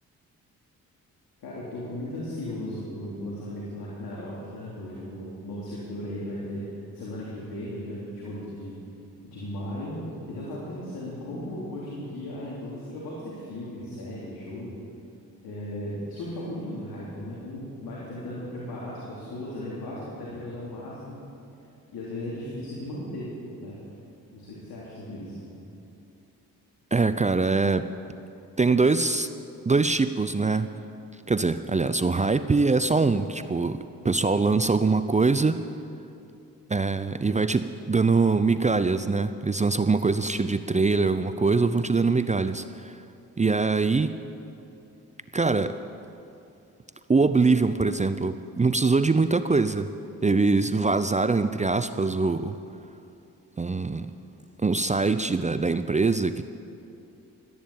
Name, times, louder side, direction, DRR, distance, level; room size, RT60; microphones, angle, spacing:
voice 1, 1.4-6.6 6.9-8.8 9.2-10.0 10.3-14.8 15.4-21.2 21.9-23.3 23.6-23.8 24.3-25.4, left 1 dB, 75° left, -6 dB, 3.4 m, -36 dB
voice 2, 26.9-27.9 28.6-29.3 29.7-30.7 31.3-33.8 34.0-35.6 36.7-42.9 43.4-44.2 45.3-45.8 47.1-49.9 50.2-52.6 53.6-54.1 54.6-56.4, right 4 dB, 20° right, 12 dB, 0.6 m, -23 dB
13.5 x 10.5 x 8.8 m, 2.6 s
supercardioid pair, 50°, 36 cm